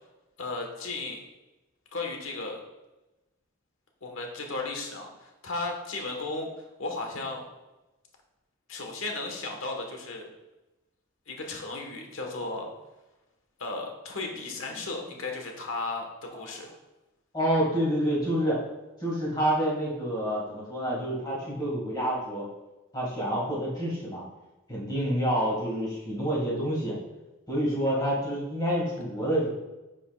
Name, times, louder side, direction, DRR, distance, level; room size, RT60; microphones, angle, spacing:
voice 1, 0.4-1.2 1.9-2.6 4.0-6.5 6.8-7.4 8.7-10.3 11.3-12.7 13.6-16.7, left 3 dB, 75° left, 2 dB, 1.4 m, -35 dB
voice 2, 17.3-18.6 19.0-22.5 22.9-24.2 24.7-27.0 27.5-29.5, equal, 20° left, -5 dB, 2.1 m, -28 dB
9.9 x 5.3 x 2.4 m, 1.0 s
head